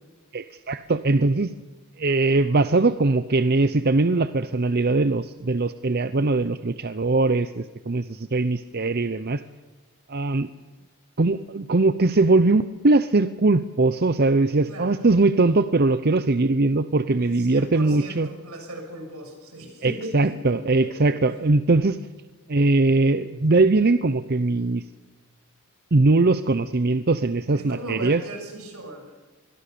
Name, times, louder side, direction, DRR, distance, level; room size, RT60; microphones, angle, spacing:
voice 1, 0.3-1.5 2.0-9.4 10.1-10.5 11.2-18.3 19.8-22.0 22.5-24.8 25.9-28.2, right 3 dB, 45° right, 12 dB, 0.7 m, -21 dB
voice 2, 14.7-15.1 17.2-21.4 27.5-29.1, right 1 dB, 80° right, 4 dB, 7.0 m, -38 dB
26.0 x 21.5 x 6.9 m, 1.3 s
head